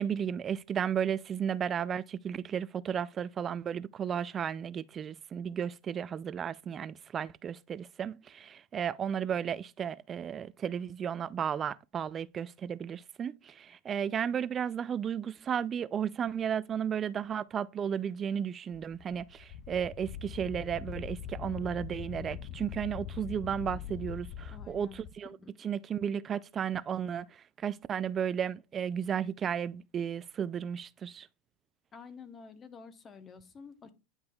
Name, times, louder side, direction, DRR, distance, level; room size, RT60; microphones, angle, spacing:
voice 1, 0.0-25.4 25.6-31.3, right 8 dB, 30° right, 0.3 m, -34 dB
Wind, 18.7-25.1, left 8 dB, 45° left, 0.4 m, -42 dB
voice 2, 24.5-25.0 25.3-25.5 31.9-33.9, left 5 dB, 25° left, 0.9 m, -50 dB
9.6 x 5.3 x 2.3 m
hypercardioid pair, 110°, 0 cm